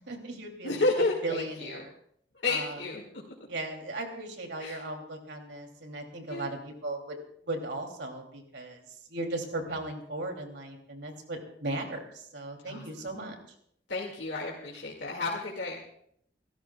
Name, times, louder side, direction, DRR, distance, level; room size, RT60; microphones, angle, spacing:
voice 1, 0.1-1.9 2.5-2.8 3.5-7.2 7.5-8.8 9.1-13.3, right 2 dB, 80° right, 2 dB, 2.9 m, -37 dB
voice 2, 0.6-1.8 2.4-3.0 4.6-4.8 6.3-6.6 12.6-12.8 13.9-15.8, left 2 dB, 90° left, -3 dB, 2.2 m, -31 dB
29.5 x 13.5 x 2.4 m, 0.69 s
head